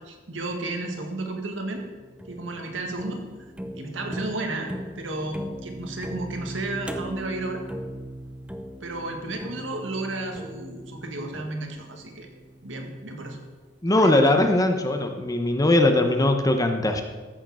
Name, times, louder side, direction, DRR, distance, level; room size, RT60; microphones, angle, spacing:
voice 1, 0.0-1.8 2.3-3.2 3.7-7.6 8.8-12.3 12.6-13.4 14.0-14.2, right 2 dB, 75° right, 3 dB, 1.8 m, -33 dB
sound 1, 1.8-13.0, equal, 5° right, 0.6 m, -39 dB
voice 2, 13.8-17.0, left 1 dB, 20° left, 6 dB, 0.9 m, -20 dB
13.5 x 6.5 x 6.2 m, 1.3 s
head